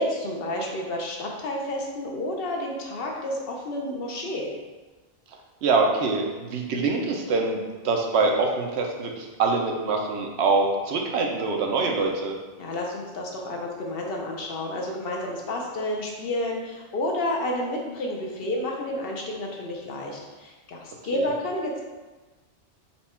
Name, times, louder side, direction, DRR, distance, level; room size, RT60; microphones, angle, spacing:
voice 1, 0.0-4.5 12.6-21.8, left 1 dB, 60° left, 0 dB, 0.8 m, -30 dB
voice 2, 5.6-12.3 21.1-21.3, right 3 dB, 75° right, 1 dB, 0.8 m, -24 dB
4.2 x 2.3 x 4.2 m, 1.2 s
omnidirectional pair, 1.2 m